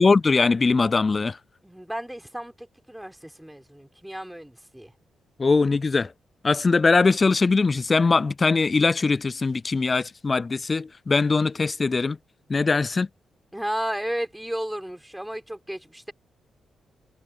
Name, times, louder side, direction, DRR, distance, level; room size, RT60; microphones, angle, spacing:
voice 1, 0.0-1.4 5.4-6.1 6.4-12.2 12.5-13.1, left 4 dB, 40° left, 0.3 m, -21 dB
voice 2, 1.6-4.9 13.5-16.1, right 1 dB, 5° right, 4.4 m, -33 dB
hypercardioid pair, 40°, 0 cm